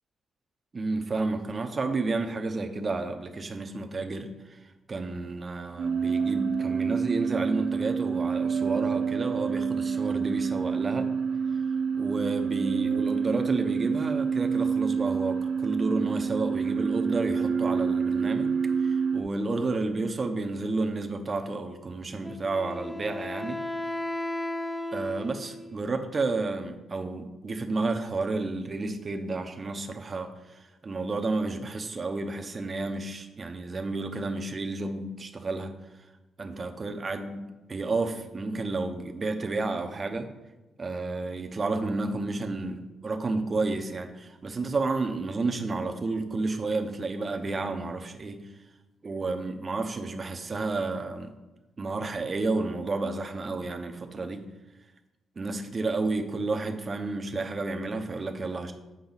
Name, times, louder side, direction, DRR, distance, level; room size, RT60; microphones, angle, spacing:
voice 1, 0.7-4.6 4.9-11.1 11.9-23.6 24.9-35.7 36.4-40.3 40.8-48.4 49.0-51.3 51.8-54.4 55.4-58.7, right 3 dB, 30° right, 5 dB, 0.8 m, -31 dB
sound 1, 5.8-19.2, right 6 dB, 65° right, 0.9 m, -28 dB
Wind instrument woodwind instrument, 22.2-25.8, left 2 dB, 10° left, 0.5 m, -35 dB
8.7 x 5.2 x 4.0 m, 1.1 s
cardioid pair, 115°, 0 cm